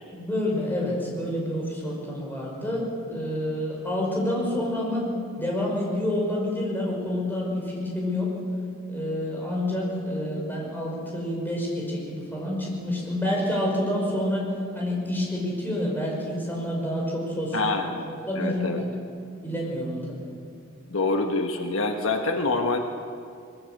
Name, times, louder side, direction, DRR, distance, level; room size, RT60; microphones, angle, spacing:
voice 1, 0.1-8.3 8.9-14.5 14.7-17.8 18.2-18.8 19.4-20.2, left 1 dB, 10° left, -3 dB, 5.7 m, -28 dB
voice 2, 17.5-18.1 18.4-18.8 20.9-22.8, left 3 dB, 70° left, 4 dB, 1.4 m, -26 dB
21.5 x 21.0 x 8.3 m, 2.4 s
head